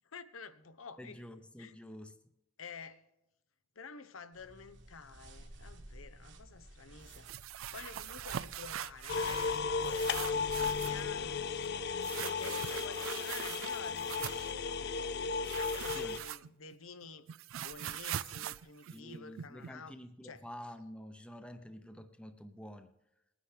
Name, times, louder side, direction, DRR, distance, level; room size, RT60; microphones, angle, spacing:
voice 1, 0.1-1.2 1.6-1.7 2.6-3.1 3.8-7.3 7.7-11.4 12.2-15.2 15.5-17.3 17.6-20.0 20.2-20.4, left 5 dB, 85° left, 0.9 m, -49 dB
voice 2, 1.0-2.1 15.9-16.2 18.9-22.9, left 1 dB, 5° left, 0.7 m, -48 dB
sound 1, 4.3-11.3, right 1 dB, 60° right, 1.4 m, -53 dB
sound 2, 7.1-9.6 9.8-11.0 12.0-14.5 15.4-16.8 17.0-19.7, right 11 dB, 75° right, 0.4 m, -42 dB
sound 3, 9.1-16.2, left 5 dB, 55° left, 0.5 m, -35 dB
19.5 x 10.0 x 3.4 m
head